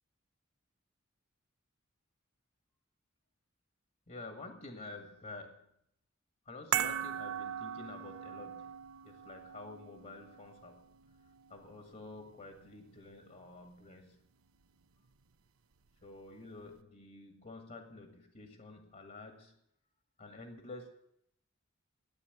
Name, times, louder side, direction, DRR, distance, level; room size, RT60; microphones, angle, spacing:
voice 1, 4.1-5.6 6.5-8.7 9.0-10.8 11.5-14.2 16.0-19.6 20.2-20.9, left 3 dB, 45° left, 5 dB, 1.7 m, -49 dB
sound 1, 6.7-13.1 13.4-13.5, right 10 dB, 85° right, 0.7 m, -40 dB
11.5 x 9.0 x 9.5 m, 0.75 s
head